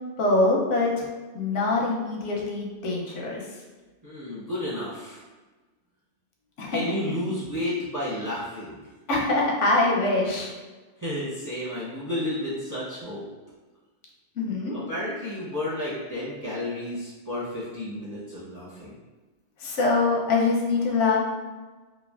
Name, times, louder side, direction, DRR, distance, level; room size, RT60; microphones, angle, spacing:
voice 1, 0.2-1.1 1.3-3.5 6.6-6.8 9.1-10.5 14.4-14.8 19.6-21.2, left 3 dB, 85° left, -2 dB, 1.0 m, -24 dB
voice 2, 4.0-5.2 6.7-8.8 11.0-13.2 14.7-18.9, left 1 dB, 20° right, -8 dB, 0.6 m, -31 dB
3.1 x 2.3 x 2.3 m, 1.2 s
omnidirectional pair, 1.2 m